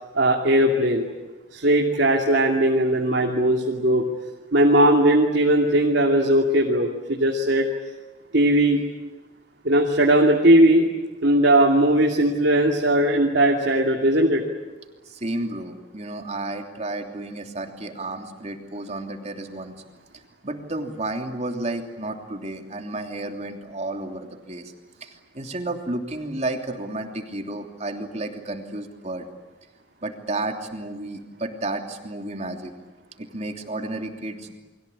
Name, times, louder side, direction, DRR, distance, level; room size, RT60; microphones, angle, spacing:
voice 1, 0.1-1.0 1.5-4.0 4.5-7.7 8.3-8.8 9.6-10.9 11.2-14.4, right 1 dB, 65° right, 1 dB, 2.7 m, -18 dB
voice 2, 15.1-19.7 20.4-24.7 25.0-29.2 30.0-32.7 33.2-34.5, right 2 dB, 35° right, 4 dB, 3.0 m, -32 dB
29.5 x 23.0 x 8.6 m, 1.2 s
head